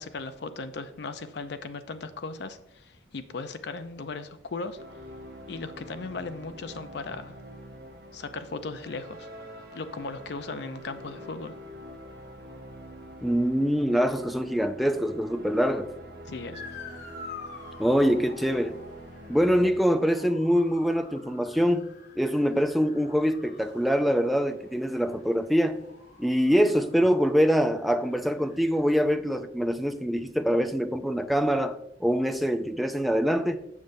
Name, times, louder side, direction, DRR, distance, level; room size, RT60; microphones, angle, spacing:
voice 1, 0.0-4.8 5.5-7.4 8.1-9.3 9.7-11.5 16.3-16.7, left 3 dB, 65° left, 0.5 m, -37 dB
sound 1, 4.7-19.7, equal, 55° right, 0.8 m, -45 dB
voice 2, 13.2-15.9 17.8-18.8 19.3-21.9 22.2-25.8 26.2-33.6, equal, ahead, 0.3 m, -24 dB
Motor vehicle (road) / Siren, 16.5-29.1, left 4 dB, 85° left, 1.6 m, -48 dB
7.3 x 6.4 x 2.6 m
head